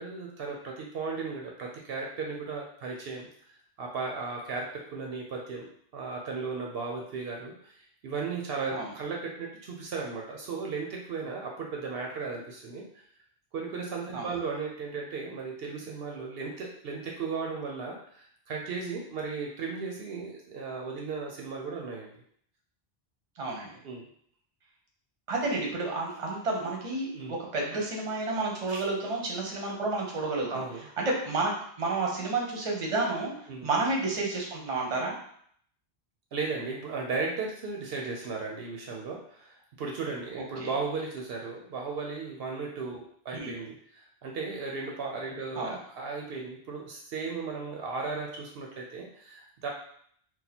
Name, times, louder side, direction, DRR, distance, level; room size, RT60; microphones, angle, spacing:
voice 1, 0.0-3.3 3.8-5.7 5.9-12.8 13.5-22.1 23.8-24.0 27.1-27.3 27.7-27.9 28.7-28.8 30.5-30.9 33.5-33.7 36.3-49.7, right 4 dB, 70° right, -1 dB, 0.8 m, -36 dB
voice 2, 23.4-23.7 25.3-30.6 31.0-33.3 33.6-35.1 40.4-40.7 43.3-43.5 45.6-45.7, right 3 dB, 35° right, -1 dB, 0.7 m, -30 dB
2.8 x 2.2 x 4.1 m, 0.63 s
omnidirectional pair, 1.1 m